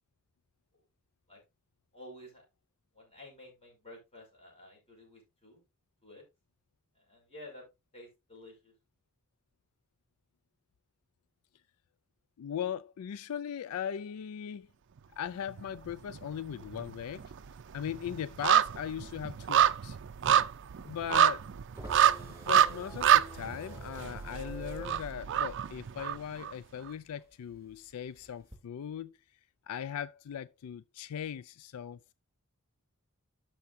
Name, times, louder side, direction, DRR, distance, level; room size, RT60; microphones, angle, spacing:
voice 1, 1.9-2.4 2.9-5.6 6.0-6.2 6.9-7.6 7.9-8.7, left 1 dB, 30° left, 5.8 m, -51 dB
voice 2, 12.4-14.7 15.2-17.2 17.7-20.0 20.8-21.5 22.2-29.2 29.7-32.1, left 9 dB, 85° left, 0.4 m, -39 dB
sound 1, 15.5-16.3 16.5-26.5 26.9-27.0, right 9 dB, 55° right, 0.5 m, -27 dB
sound 2, 19.6-26.5 26.8-28.6, right 1 dB, 15° right, 2.7 m, -48 dB
13.0 x 5.9 x 2.6 m
head